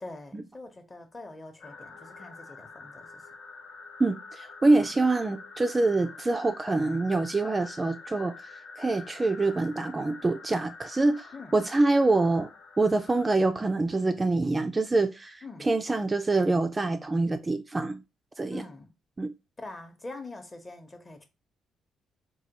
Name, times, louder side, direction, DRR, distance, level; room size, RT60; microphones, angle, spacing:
voice 1, 0.0-3.3 4.8-4.9 11.3-11.6 15.4-15.7 18.5-18.9 19.6-21.3, left 2 dB, 25° left, 0.8 m, -44 dB
sound 1, 1.6-13.3, left 4 dB, 65° left, 0.7 m, -46 dB
voice 2, 4.0-8.5 8.8-12.5 12.8-18.0 18.4-18.6 19.2-19.3, right 2 dB, 25° right, 0.3 m, -25 dB
4.1 x 2.2 x 2.8 m
cardioid pair, 90°, 0 cm